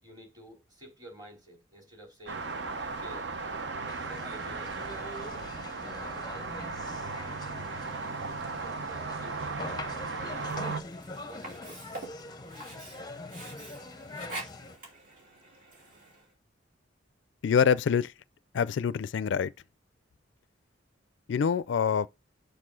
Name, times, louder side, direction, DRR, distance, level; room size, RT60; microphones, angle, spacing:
voice 1, 0.0-2.5 2.8-3.3 4.0-4.8 5.8-6.5 8.5-10.3 11.3-11.9 12.7-12.8, right 1 dB, 20° right, 3.3 m, -50 dB
sound 1, 2.3-10.8, right 4 dB, 60° right, 0.7 m, -36 dB
sound 2, 3.9-14.8, left 2 dB, 20° left, 0.6 m, -44 dB
Sink (filling or washing), 10.4-16.3, right 2 dB, 45° right, 2.9 m, -46 dB
voice 2, 17.4-18.1 18.5-19.5 21.3-22.1, left 7 dB, 70° left, 0.3 m, -25 dB
6.7 x 6.6 x 3.8 m
head